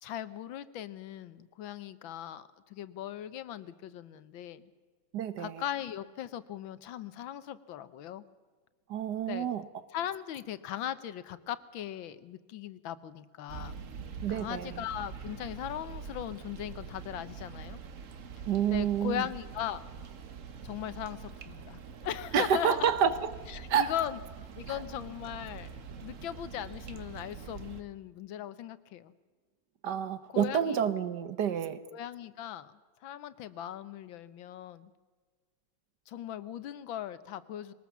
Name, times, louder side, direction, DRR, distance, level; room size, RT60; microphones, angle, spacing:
voice 1, 0.0-4.7 5.4-8.2 9.3-9.5 9.9-13.8 14.3-17.8 18.7-19.9 20.6-22.9 23.5-24.2 24.6-25.7 26.0-29.1 30.3-30.8 31.9-32.7 33.0-34.9 36.1-37.7, left 11 dB, 80° left, 1.6 m, -39 dB
voice 2, 5.1-5.6 8.9-9.6 14.2-14.8 18.5-19.2 22.3-23.3 23.7-23.9 24.7-24.8 29.8-31.8, right 8 dB, 65° right, 1.5 m, -29 dB
sound 1, 13.5-27.8, right 6 dB, 45° right, 1.3 m, -45 dB
22.5 x 19.0 x 7.2 m
omnidirectional pair, 2.1 m